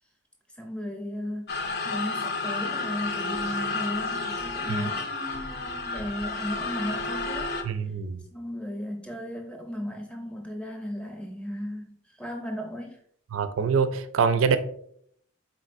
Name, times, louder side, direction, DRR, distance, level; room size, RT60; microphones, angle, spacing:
voice 1, 0.5-1.6 1.8-7.5 8.3-13.0, equal, 5° left, 0.6 m, -35 dB
sound 1, 1.5-7.6, left 3 dB, 50° left, 0.5 m, -31 dB
voice 2, 7.7-8.2 13.3-14.6, right 6 dB, 80° right, 0.4 m, -24 dB
4.1 x 4.0 x 2.5 m
head